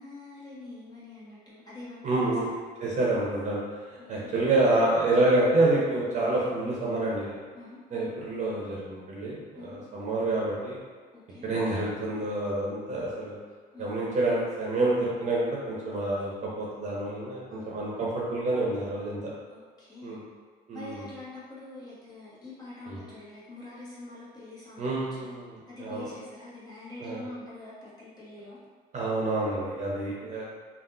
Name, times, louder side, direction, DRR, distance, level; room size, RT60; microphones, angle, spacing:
voice 1, 0.0-2.6 4.0-4.3 7.5-8.1 9.5-9.8 11.1-11.5 13.7-13.9 17.5-18.1 19.5-20.2 20.7-25.0 25.7-28.6, left 2 dB, 25° left, -10 dB, 1.3 m, -45 dB
voice 2, 2.0-2.5 2.8-7.4 7.9-10.8 11.4-13.4 13.8-19.3 20.0-20.2 20.7-21.0 22.9-23.0 24.8-26.1 27.0-27.2 28.9-30.4, right 2 dB, 45° right, -5 dB, 0.8 m, -28 dB
3.4 x 2.5 x 2.6 m, 1.5 s
cardioid pair, 110°, 17 cm